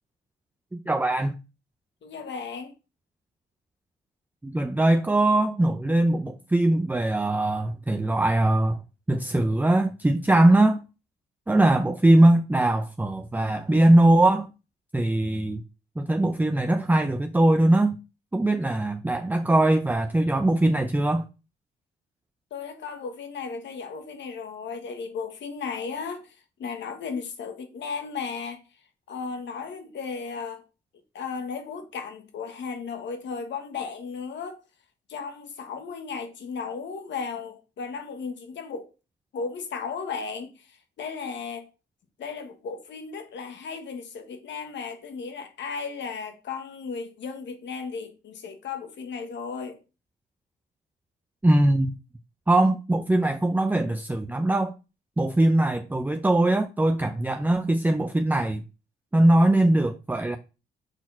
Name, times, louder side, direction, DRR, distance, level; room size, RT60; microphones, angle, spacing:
voice 1, 0.7-1.4 4.4-8.8 9.1-10.8 11.5-14.5 14.9-15.6 16.0-18.0 18.3-21.3 51.4-52.0 52.5-54.7 55.2-58.6 59.1-60.4, right 1 dB, 10° right, 0.6 m, -21 dB
voice 2, 2.0-2.7 22.5-28.6 29.1-30.6 31.1-34.6 35.1-38.9 39.3-41.7 42.2-49.8, left 5 dB, 65° left, 1.5 m, -35 dB
6.3 x 4.4 x 5.7 m
cardioid pair, 90°, 20 cm